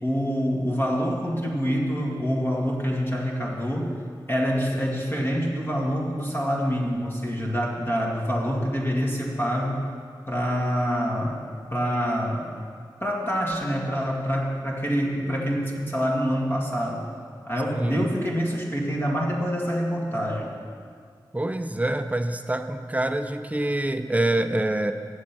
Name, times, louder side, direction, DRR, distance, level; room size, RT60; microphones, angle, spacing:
voice 1, 0.0-3.9 4.3-9.8 10.3-11.4 11.7-12.5 13.0-17.0 17.5-20.5, equal, 25° left, -2 dB, 2.0 m, -26 dB
voice 2, 17.7-18.1 21.3-24.9, right 1 dB, 15° right, 8 dB, 0.6 m, -26 dB
8.4 x 7.5 x 5.9 m, 2.2 s
cardioid pair, 50°, 8 cm